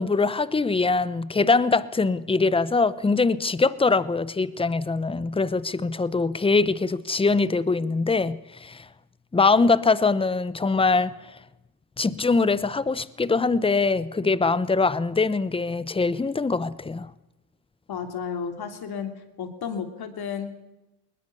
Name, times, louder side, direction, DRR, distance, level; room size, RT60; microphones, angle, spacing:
voice 1, 0.0-8.8 9.3-11.1 12.0-17.1, left 4 dB, 10° left, 17 dB, 0.8 m, -23 dB
voice 2, 17.9-19.1 19.4-20.7, left 6 dB, 50° left, 7 dB, 3.0 m, -32 dB
20.5 x 20.0 x 6.8 m, 0.97 s
cardioid pair, 100°, 47 cm